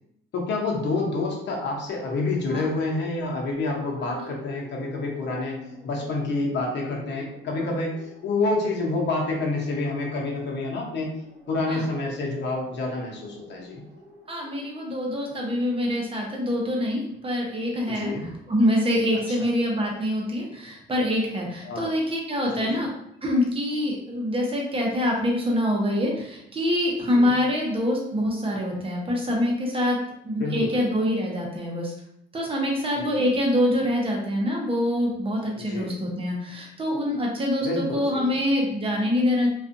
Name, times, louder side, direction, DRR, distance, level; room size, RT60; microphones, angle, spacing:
voice 1, 0.3-5.6 5.8-11.1 11.5-13.8 17.9-18.3 19.3-19.5 21.6-21.9 22.5-22.8 27.1-27.4 30.4-30.8 33.0-33.3 35.6-36.0 37.6-38.4, left 3 dB, 60° left, -1 dB, 0.8 m, -28 dB
sound 1, 1.9-16.2, equal, 65° right, 0.9 m, -48 dB
voice 2, 14.3-22.9 23.2-30.0 30.2-31.9 32.3-39.5, left 1 dB, 30° right, -2 dB, 0.8 m, -25 dB
2.4 x 2.4 x 2.6 m, 0.77 s
cardioid pair, 90°, 20 cm